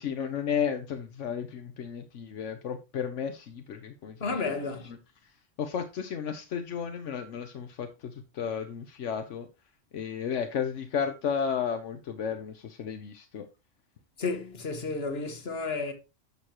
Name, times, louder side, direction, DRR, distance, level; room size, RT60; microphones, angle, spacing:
voice 1, 0.0-4.2 4.9-5.0 5.2-9.5 9.9-13.5, left 7 dB, 80° left, 1.2 m, -33 dB
voice 2, 4.2-4.9 14.2-15.9, left 4 dB, 60° left, 1.7 m, -32 dB
11.0 x 6.8 x 2.9 m
omnidirectional pair, 1.2 m